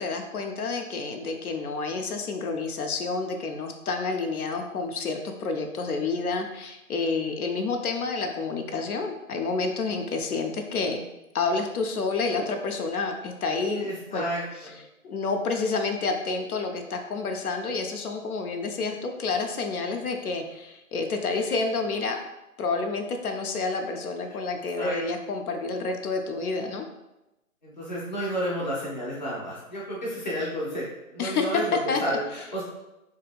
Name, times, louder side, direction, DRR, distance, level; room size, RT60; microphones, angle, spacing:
voice 1, 0.0-11.0 11.3-14.3 14.6-22.3 22.6-26.9 31.2-31.6 31.9-32.2, left 4 dB, 90° left, 4 dB, 0.6 m, -29 dB
voice 2, 13.7-14.8 24.8-25.0 27.6-30.9 31.1-32.6, equal, 35° left, -7 dB, 0.5 m, -31 dB
2.7 x 2.6 x 2.2 m, 0.94 s
hypercardioid pair, 170°, 43 cm